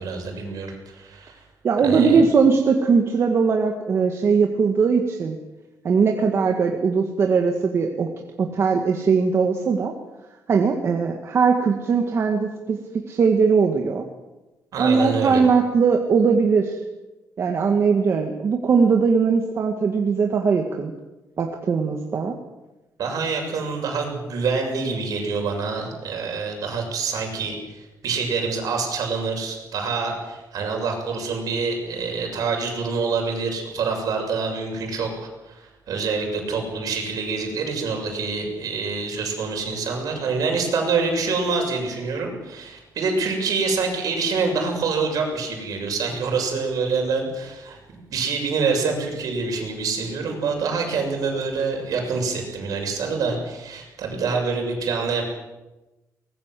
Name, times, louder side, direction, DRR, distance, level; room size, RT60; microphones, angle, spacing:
voice 1, 0.0-1.4 1.8-2.2 14.7-15.4 23.0-47.8 48.1-55.2, right 4 dB, 65° right, 2 dB, 6.9 m, -26 dB
voice 2, 1.6-5.4 5.8-8.1 8.4-9.9 10.5-12.8 13.1-14.0 14.8-16.8 17.4-20.9 21.4-22.3, right 5 dB, 40° right, 3 dB, 1.9 m, -20 dB
24.0 x 20.0 x 7.7 m, 1.0 s
wide cardioid pair, 180°, 7 cm